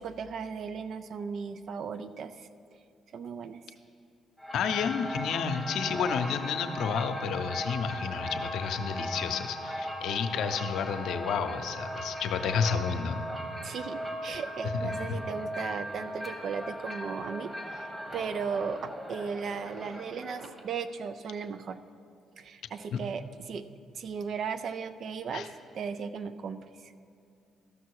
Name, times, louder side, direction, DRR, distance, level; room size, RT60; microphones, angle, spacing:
voice 1, 0.0-2.5 3.1-3.6 13.6-21.8 22.4-23.7 23.9-25.5 25.7-26.9, right 6 dB, 60° right, 12 dB, 0.5 m, -36 dB
sound 1, 4.4-20.8, equal, 10° right, 1.2 m, -38 dB
voice 2, 4.5-13.3 14.8-15.2 22.9-23.0 25.3-25.5, left 6 dB, 75° left, 7 dB, 0.6 m, -31 dB
13.5 x 6.0 x 4.7 m, 2.6 s
supercardioid pair, 65°, 0 cm